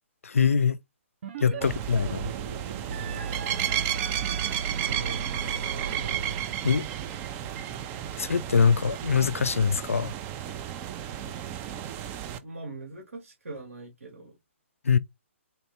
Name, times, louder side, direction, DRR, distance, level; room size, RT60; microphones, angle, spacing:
voice 1, 0.2-0.8 1.4-2.2 6.6-6.9 8.2-10.1 14.8-15.0, left 6 dB, 90° left, 0.4 m, -23 dB
sound 1, 1.2-1.6 1.9-6.8, right 5 dB, 55° right, 0.8 m, -36 dB
voice 2, 1.5-2.0 4.9-5.7 12.4-14.4, right 3 dB, 85° right, 1.8 m, -41 dB
sound 2, 1.6-12.4, right 11 dB, 25° right, 0.5 m, -33 dB
4.3 x 2.7 x 3.3 m
hypercardioid pair, 140°, 7 cm